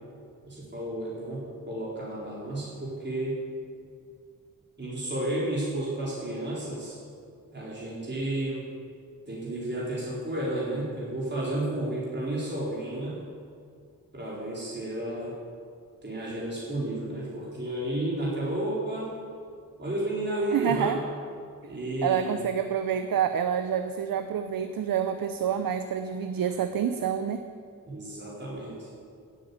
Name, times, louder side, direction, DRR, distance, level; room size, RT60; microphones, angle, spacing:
voice 1, 0.5-3.4 4.8-7.0 7.5-8.6 9.3-13.2 14.1-15.3 16.0-19.1 19.8-21.0 21.7-22.3 27.9-28.9, right 1 dB, 30° right, -7 dB, 4.3 m, -32 dB
voice 2, 20.5-21.0 22.0-27.4, right 8 dB, 90° right, 8 dB, 0.7 m, -28 dB
16.0 x 8.3 x 8.5 m, 2.2 s
wide cardioid pair, 90°, 33 cm